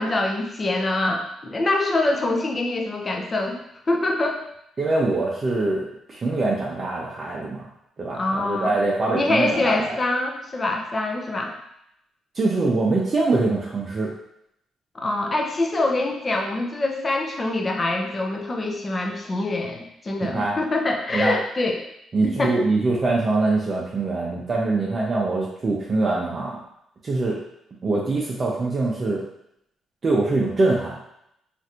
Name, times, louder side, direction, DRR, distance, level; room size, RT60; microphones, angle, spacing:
voice 1, 0.0-4.4 8.1-8.8 9.1-11.5 14.9-21.8 22.2-22.6, left 2 dB, 30° left, 2 dB, 0.5 m, -25 dB
voice 2, 4.8-7.6 8.0-9.9 12.3-14.1 20.2-20.6 21.1-21.3 22.1-26.6 27.0-27.4 27.8-29.2 30.0-31.0, right 3 dB, 40° right, -4 dB, 0.5 m, -23 dB
3.2 x 2.5 x 2.8 m, 0.78 s
cardioid pair, 90°, 0 cm